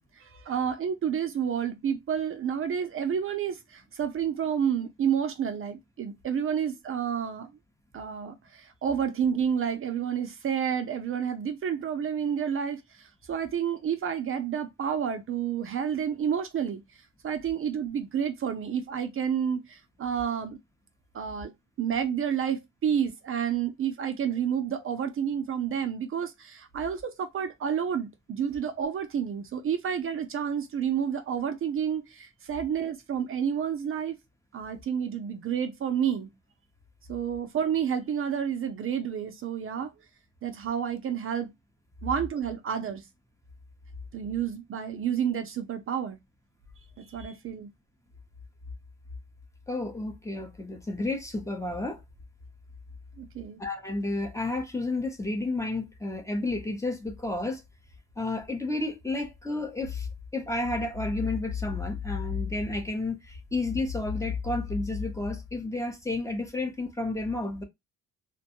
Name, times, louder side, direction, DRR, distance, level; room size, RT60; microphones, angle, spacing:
voice 1, 0.2-7.5 7.9-16.8 17.2-20.6 21.1-21.5 21.8-34.2 34.5-36.3 37.1-39.9 40.4-41.5 42.0-43.0 44.1-46.2 47.0-47.7 53.2-53.6, right 8 dB, 45° right, 0.5 m, -30 dB
voice 2, 49.7-52.0 53.6-57.6 58.2-60.1 60.3-67.6, left 2 dB, 10° left, 0.7 m, -31 dB
2.5 x 2.2 x 2.8 m
cardioid pair, 90°, 30 cm